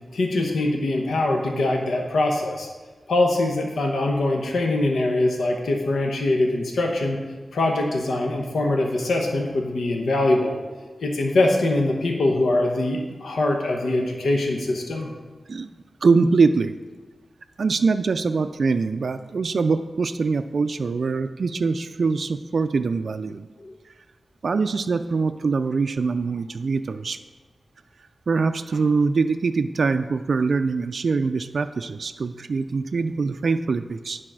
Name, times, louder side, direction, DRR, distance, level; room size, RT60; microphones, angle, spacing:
voice 1, 0.1-2.7 3.1-7.2 7.5-10.6 11.0-15.1 23.6-23.7, left 2 dB, 90° left, 2 dB, 0.9 m, -23 dB
voice 2, 16.0-16.7 17.6-23.5 24.4-27.2 28.3-34.2, right 4 dB, 70° right, 9 dB, 0.3 m, -23 dB
10.0 x 4.1 x 6.1 m, 1.3 s
cardioid pair, 55°, 0 cm